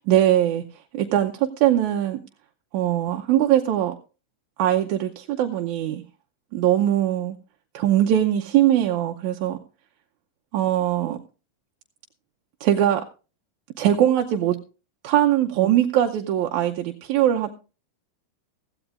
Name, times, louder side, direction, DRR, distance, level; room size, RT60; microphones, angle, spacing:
voice 1, 0.1-0.6 0.9-2.2 2.7-4.0 4.6-6.0 6.5-7.3 7.7-9.6 10.5-11.2 12.6-13.0 13.8-14.6 15.0-17.5, right 12 dB, 75° right, 3 dB, 2.0 m, -21 dB
16.0 x 15.0 x 2.5 m, 0.33 s
omnidirectional pair, 3.8 m